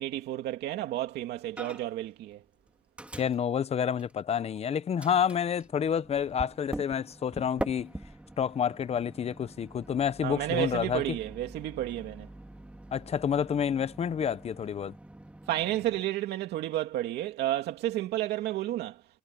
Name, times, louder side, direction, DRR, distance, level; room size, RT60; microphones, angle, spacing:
voice 1, 0.0-2.4 10.2-12.3 15.5-19.0, right 14 dB, 75° right, 2.5 m, -31 dB
Microwave oven, 1.6-2.1 2.3-4.6 5.0-16.0, right 1 dB, 5° right, 2.8 m, -44 dB
voice 2, 3.2-7.9 8.4-11.2 12.9-14.9, left 8 dB, 40° left, 0.9 m, -29 dB
cardioid pair, 110°, 17 cm